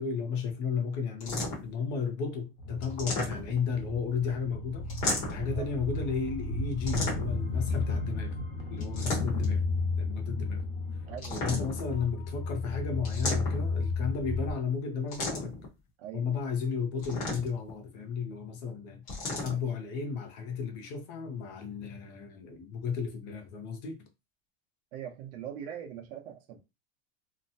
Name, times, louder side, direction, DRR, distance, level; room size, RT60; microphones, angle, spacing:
voice 1, 0.0-4.9 5.3-8.4 8.7-9.6 10.0-10.6 11.3-15.6 16.1-19.0 19.3-24.0, left 6 dB, 45° left, 0.6 m, -34 dB
sound 1, 1.2-1.8 2.8-3.7 4.9-5.5 6.9-7.5 8.8-9.6 11.2-11.9 13.0-13.8 15.1-15.7 17.0-17.7 19.1-19.6, left 2 dB, 25° left, 1.0 m, -34 dB
sound 2, 2.6-14.5, left 3 dB, 80° left, 1.1 m, -33 dB
voice 2, 11.1-11.7 16.0-16.3 19.5-19.6 24.9-26.6, right 9 dB, 60° right, 0.8 m, -42 dB
2.8 x 2.1 x 2.6 m
supercardioid pair, 180°, 32 cm